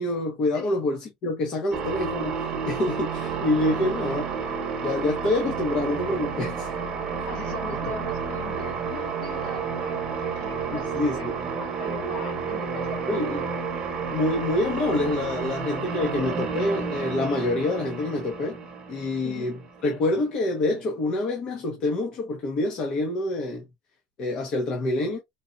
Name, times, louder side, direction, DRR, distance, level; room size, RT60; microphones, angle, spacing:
voice 1, 0.0-4.2 4.8-6.7 7.2-7.3 7.9-8.0 10.7-11.3 13.1-13.5 14.1-18.6 18.9-19.6 19.8-23.6 24.2-25.2, left 2 dB, 40° left, 1.1 m, -26 dB
sound 1, 1.7-20.0, right 6 dB, 30° right, 1.0 m, -31 dB
voice 2, 3.6-4.4 6.9-13.5 19.2-19.6, left 4 dB, 60° left, 2.4 m, -41 dB
3.9 x 3.9 x 2.5 m
cardioid pair, 165°, 2 cm